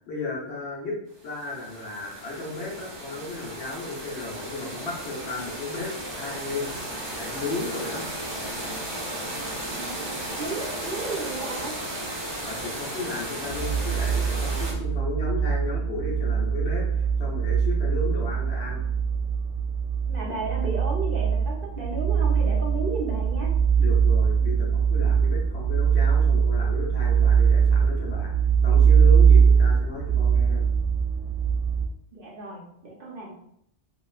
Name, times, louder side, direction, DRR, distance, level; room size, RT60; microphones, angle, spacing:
voice 1, 0.1-1.0 1.2-6.7 7.1-8.1 12.4-18.8 23.8-28.3 28.6-30.6, left 3 dB, 70° left, -4 dB, 1.1 m, -34 dB
sound 1, 1.2-14.7, right 1 dB, 30° right, 0.5 m, -35 dB
voice 2, 9.7-11.7 20.1-23.5 32.1-33.3, right 3 dB, 55° right, -2 dB, 0.9 m, -33 dB
sound 2, 13.5-31.9, right 6 dB, 85° right, 0.9 m, -22 dB
3.1 x 2.9 x 2.3 m, 0.71 s
omnidirectional pair, 1.2 m